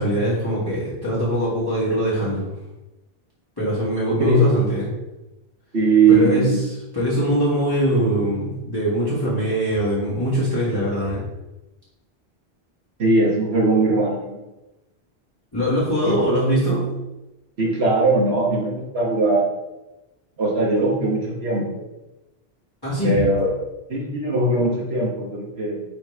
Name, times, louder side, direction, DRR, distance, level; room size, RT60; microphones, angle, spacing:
voice 1, 0.0-2.5 3.6-4.9 6.1-11.2 15.5-17.0 22.8-23.3, equal, 20° left, -9 dB, 1.9 m, -22 dB
voice 2, 5.7-6.6 13.0-14.4 16.0-16.2 17.6-19.4 20.4-21.8 23.0-23.5 23.9-25.8, right 2 dB, 85° right, -2 dB, 1.6 m, -20 dB
8.9 x 3.2 x 3.3 m, 1.0 s
omnidirectional pair, 1.0 m